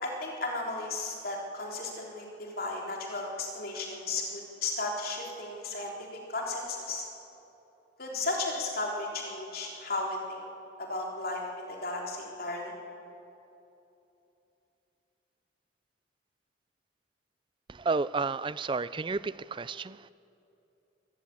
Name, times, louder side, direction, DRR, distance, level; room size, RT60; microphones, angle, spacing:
voice 1, 0.0-5.9 6.3-7.1 8.0-10.4 10.8-12.7, left 2 dB, 50° left, -1 dB, 3.7 m, -34 dB
voice 2, 17.7-20.1, right 4 dB, 25° right, 18 dB, 0.4 m, -31 dB
23.5 x 14.0 x 8.6 m, 2.9 s
head